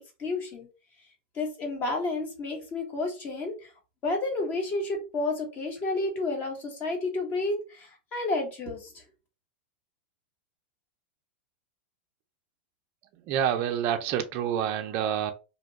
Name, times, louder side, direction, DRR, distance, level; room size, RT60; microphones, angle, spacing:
voice 1, 0.2-0.7 1.3-3.7 4.0-9.0, left 2 dB, 25° left, 1.0 m, -31 dB
voice 2, 13.3-15.3, right 9 dB, 35° right, 0.4 m, -27 dB
2.7 x 2.2 x 3.9 m
supercardioid pair, 155°, 6 cm